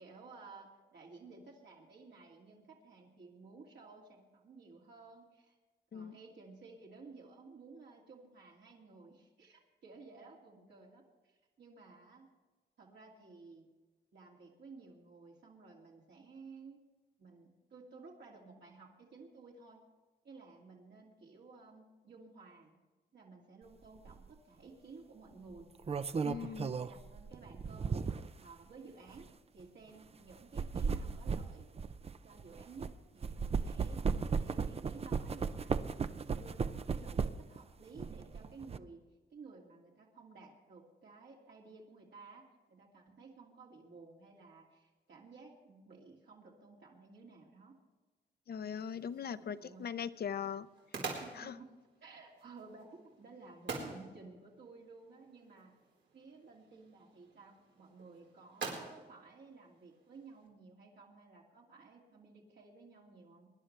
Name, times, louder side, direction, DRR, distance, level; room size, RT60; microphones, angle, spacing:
voice 1, 0.0-5.6 5.9-12.3 12.8-13.7 14.1-16.8 17.2-19.8 20.2-22.8 23.1-25.7 26.2-29.3 29.5-31.7 32.2-34.0 34.4-39.0 39.3-47.7 49.4-49.9 51.2-51.7 52.0-55.7 56.1-63.5, right 4 dB, 70° right, -3 dB, 2.5 m, -55 dB
sound 1, 24.0-24.2 25.5-28.4 29.1-29.2 30.3-32.9 33.2-37.6 37.9-38.8, right 5 dB, 35° right, 0.5 m, -36 dB
voice 2, 26.2-26.7 48.5-50.7 51.3-51.6, left 7 dB, 60° left, 14 dB, 0.6 m, -40 dB
sound 2, 48.8-60.5, right 4 dB, 85° right, 4.5 m, -48 dB
24.5 x 11.5 x 3.3 m, 1.2 s
wide cardioid pair, 160°, 19 cm